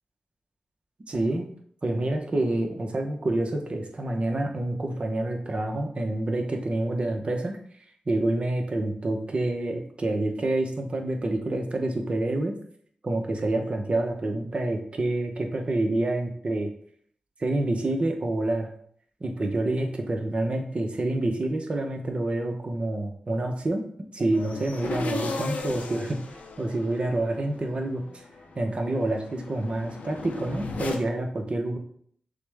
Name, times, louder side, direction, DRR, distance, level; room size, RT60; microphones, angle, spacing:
voice 1, 1.1-1.5 1.8-7.6 8.1-12.6 13.0-16.7 17.4-18.7 19.2-23.9 24.1-26.2 26.6-28.2 28.6-31.8, right 2 dB, 45° right, 3 dB, 0.8 m, -27 dB
sound 1, 24.3-31.0, left 3 dB, 80° left, 0.6 m, -36 dB
6.5 x 2.2 x 3.4 m, 0.62 s
cardioid pair, 55°, 3 cm